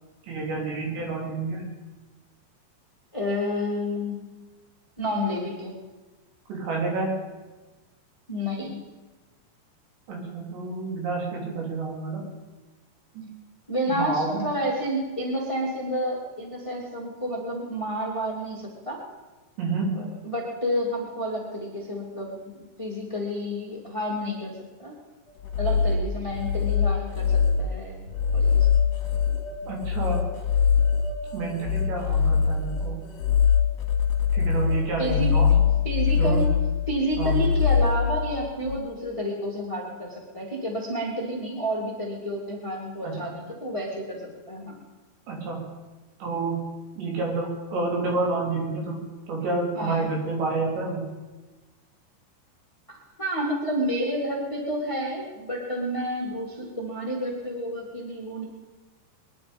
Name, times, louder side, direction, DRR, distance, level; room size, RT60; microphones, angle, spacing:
voice 1, 0.3-1.7 6.5-7.2 10.1-12.2 13.2-13.3 13.9-14.4 19.6-19.9 29.7-30.3 31.3-33.0 34.3-35.5 36.2-36.4 37.2-37.3 43.0-43.3 45.3-45.6 46.2-46.6 47.0-51.0, right 3 dB, 70° right, -1 dB, 5.5 m, -29 dB
voice 2, 3.1-4.2 5.0-5.7 8.3-8.8 13.7-19.0 19.9-25.0 25.6-28.0 28.3-28.7 35.0-35.3 35.8-36.5 36.9-44.8 49.7-50.1 52.9-58.4, equal, 15° left, -2 dB, 1.2 m, -30 dB
sound 1, 25.3-38.8, left 6 dB, 50° left, 2.3 m, -23 dB
23.0 x 10.5 x 5.3 m, 1.2 s
omnidirectional pair, 5.3 m